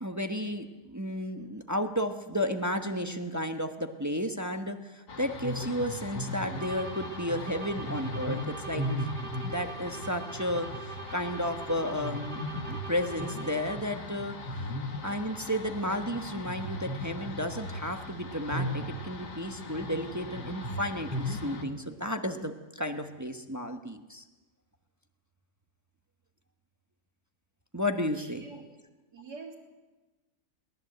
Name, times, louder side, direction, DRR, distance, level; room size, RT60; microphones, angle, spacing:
voice 1, 0.0-8.8 9.4-12.4 12.7-14.4 15.0-24.2 27.7-28.5, equal, 10° right, 6 dB, 1.0 m, -33 dB
sound 1, 5.1-21.6, left 1 dB, 80° left, 2.5 m, -37 dB
sound 2, 6.5-14.1, right 4 dB, 30° right, 1.6 m, -43 dB
voice 2, 28.1-28.6 29.1-29.6, right 4 dB, 75° right, -1 dB, 3.9 m, -45 dB
22.5 x 18.5 x 8.0 m, 1.2 s
omnidirectional pair, 1.7 m